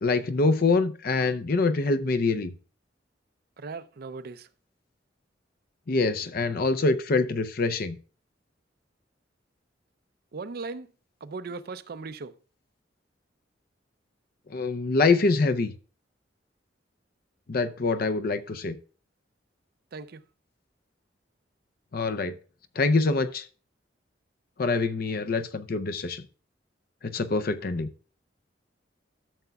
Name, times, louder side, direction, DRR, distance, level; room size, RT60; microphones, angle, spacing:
voice 1, 0.0-2.5 5.9-8.0 14.5-15.7 17.5-18.8 21.9-22.4 22.8-23.4 24.6-26.3 27.0-27.9, left 3 dB, 55° left, 0.6 m, -25 dB
voice 2, 3.6-4.5 10.3-10.9 11.2-12.3 19.9-20.2, right 4 dB, 55° right, 0.5 m, -38 dB
13.0 x 6.8 x 2.3 m
head